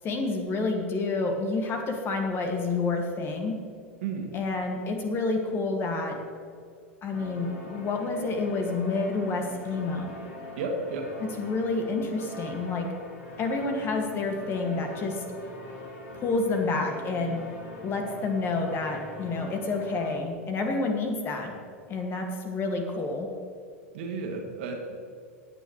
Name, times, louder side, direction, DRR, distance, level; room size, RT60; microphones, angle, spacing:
voice 1, 0.0-3.6 4.3-6.2 7.0-10.2 11.2-12.9 13.4-15.2 16.1-17.5 17.8-21.5 21.9-23.3, left 3 dB, 30° left, 2 dB, 2.2 m, -29 dB
sound 1, 7.1-20.2, left 1 dB, 60° left, 3.0 m, -42 dB
voice 2, 10.6-11.1 23.9-25.0, right 4 dB, 60° right, 2 dB, 2.2 m, -32 dB
17.5 x 9.7 x 3.3 m, 2.3 s
figure-of-eight pair, 90°, 7 cm